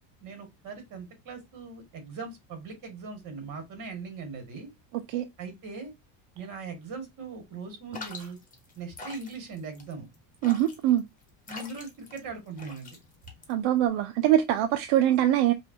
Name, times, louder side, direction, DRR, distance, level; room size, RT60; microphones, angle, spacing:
voice 1, 0.2-4.7 5.4-5.9 6.3-8.4 8.8-10.1 11.5-13.0, right 4 dB, 45° right, 2.1 m, -40 dB
sound 1, 7.9-13.9, left 3 dB, 20° left, 1.3 m, -45 dB
voice 2, 10.4-11.0 13.5-15.5, right 12 dB, 70° right, 0.7 m, -23 dB
5.6 x 2.5 x 2.8 m
cardioid pair, 165°, 45 cm